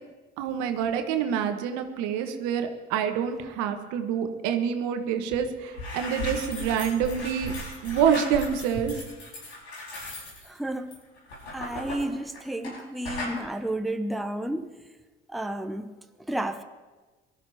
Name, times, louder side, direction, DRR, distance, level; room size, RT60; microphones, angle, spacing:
voice 1, 0.4-7.5 7.8-8.9, right 8 dB, 65° right, 7 dB, 1.4 m, -27 dB
sound 1, 5.3-5.4 5.7-12.8 13.0-13.4, left 1 dB, 80° left, 5.1 m, -37 dB
voice 2, 10.4-10.9 11.5-14.8 15.3-15.9 16.3-16.6, right 1 dB, ahead, 7 dB, 0.9 m, -31 dB
23.5 x 13.0 x 2.9 m, 1.3 s
figure-of-eight pair, 55°, 32 cm